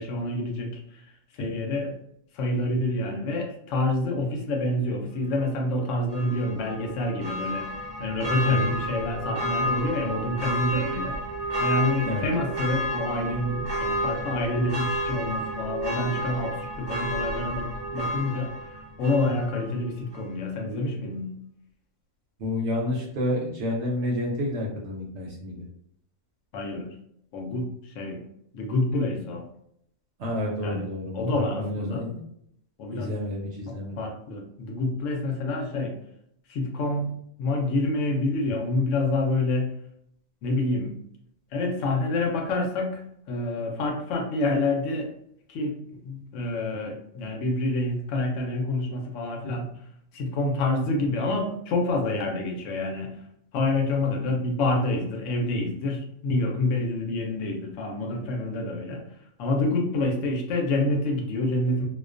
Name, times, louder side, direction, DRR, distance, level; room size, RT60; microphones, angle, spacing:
voice 1, 0.0-2.0 2.3-7.7 8.0-11.2 11.6-21.3 26.5-26.9 27.3-28.2 28.5-29.4 30.6-30.8 31.1-32.0 32.8-33.1 33.7-36.0 36.5-39.7 40.4-41.0 41.5-43.0 43.3-45.1 45.5-45.8 46.0-49.8 50.1-53.2 53.5-59.0 59.4-61.9, left 2 dB, 70° left, 1 dB, 0.9 m, -27 dB
Church bell, 6.1-19.7 20.1-20.2, equal, 40° right, 0.3 m, -31 dB
voice 2, 8.4-8.8 12.0-12.2 22.4-25.7 30.2-32.2 32.9-34.0, left 1 dB, 65° right, -1 dB, 0.8 m, -30 dB
2.4 x 2.2 x 2.4 m, 0.73 s
omnidirectional pair, 1.4 m